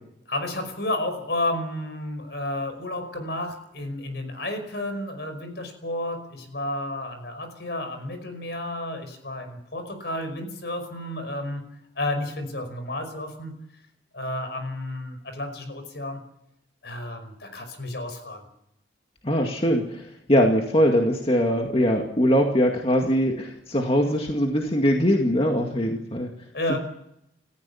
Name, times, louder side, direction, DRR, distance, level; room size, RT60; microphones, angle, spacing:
voice 1, 0.3-11.6 12.0-13.5 14.1-16.2 16.8-18.5 26.5-26.8, left 1 dB, 65° left, 7 dB, 5.5 m, -31 dB
voice 2, 19.2-26.3 26.7-26.8, equal, 30° left, 2 dB, 2.1 m, -22 dB
29.0 x 15.0 x 7.2 m, 0.79 s
head